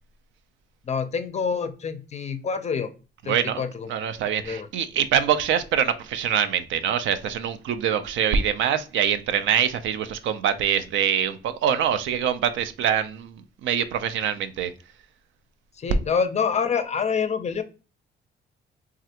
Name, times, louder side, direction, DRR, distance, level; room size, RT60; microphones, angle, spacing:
voice 1, 0.9-2.9 3.2-3.9 4.3-4.7 15.8-17.6, left 6 dB, 35° left, 0.4 m, -27 dB
voice 2, 3.3-14.7, right 9 dB, 75° right, 0.4 m, -24 dB
3.2 x 2.4 x 2.8 m
cardioid pair, 90°, 20 cm